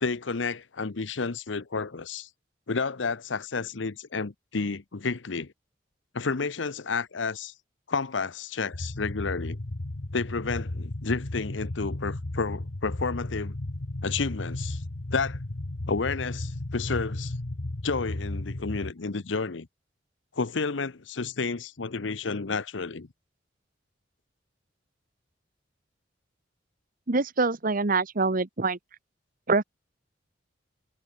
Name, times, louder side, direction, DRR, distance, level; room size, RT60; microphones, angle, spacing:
voice 1, 0.0-2.3 2.7-5.5 6.1-7.5 7.9-9.6 10.1-13.5 14.0-14.8 15.1-15.4 15.9-17.3 17.8-19.7 20.3-23.1, left 4 dB, 85° left, 0.9 m, -31 dB
sound 1, 8.7-18.9, left 1 dB, 65° left, 1.3 m, -34 dB
voice 2, 27.1-28.8 29.5-29.6, right 3 dB, 50° right, 1.2 m, -25 dB
head